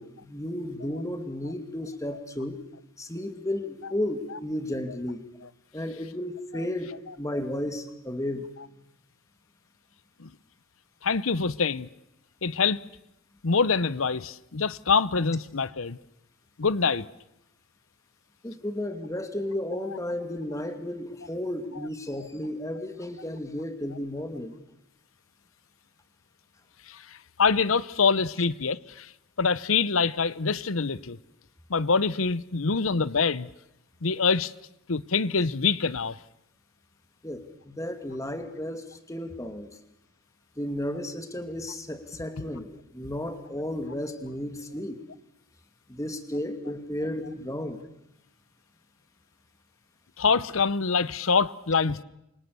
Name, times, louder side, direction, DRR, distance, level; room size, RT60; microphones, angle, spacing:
voice 1, 0.0-2.6 3.0-5.2 5.7-8.5 18.4-24.6 37.2-39.7 40.6-45.0 45.9-47.8, left 1 dB, 15° left, 2.5 m, -33 dB
voice 2, 11.0-11.9 12.4-12.8 13.4-16.0 16.6-17.1 26.9-29.1 29.4-31.2 31.7-33.5 34.0-34.5 34.9-36.2 50.2-52.0, left 5 dB, 80° left, 0.9 m, -25 dB
29.5 x 25.0 x 7.0 m
head